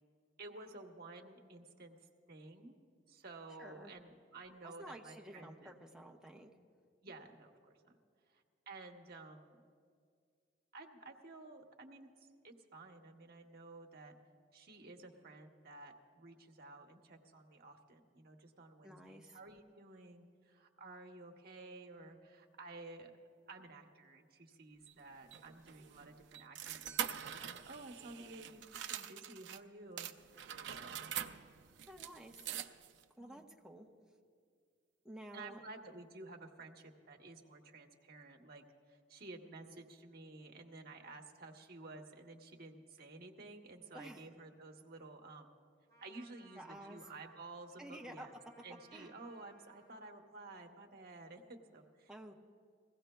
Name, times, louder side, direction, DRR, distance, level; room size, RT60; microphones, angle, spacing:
voice 1, 0.4-2.0 2.3-2.8 3.1-5.7 7.0-8.0 8.3-9.6 10.7-12.1 12.4-14.1 14.5-23.1 23.5-30.1 30.4-31.3 33.2-33.4 35.3-45.5 46.0-48.3 48.6-52.3, right 2 dB, 55° right, 2 dB, 1.0 m, -53 dB
voice 2, 3.6-3.9 4.6-6.5 18.8-19.4 31.9-32.5 33.2-33.9 35.0-35.6 43.9-44.2 46.5-47.0 47.8-48.3 48.9-49.1 52.1-52.3, right 1 dB, 5° right, 0 dB, 0.9 m, -51 dB
sound 1, 24.9-29.6 30.0-33.0, right 9 dB, 75° right, 0.5 m, -44 dB
Trumpet, 45.9-50.2, right 2 dB, 20° left, 3.7 m, -65 dB
21.5 x 16.5 x 2.3 m, 2.1 s
head